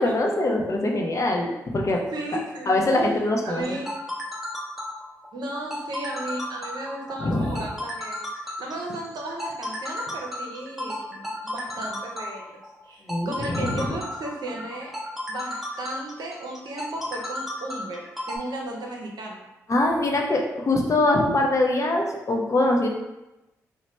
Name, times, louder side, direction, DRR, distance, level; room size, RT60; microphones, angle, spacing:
voice 1, 0.0-2.0 2.7-3.6 7.2-7.6 13.1-13.9 19.7-22.9, left 2 dB, 45° left, 0 dB, 0.6 m, -23 dB
voice 2, 2.1-2.9 3.4-3.9 5.3-14.9 15.3-19.4, right 1 dB, 65° right, 0 dB, 0.6 m, -35 dB
sound 1, 3.6-18.4, left 1 dB, 5° right, 0.8 m, -34 dB
2.8 x 2.1 x 3.1 m, 0.97 s
supercardioid pair, 45°, 7 cm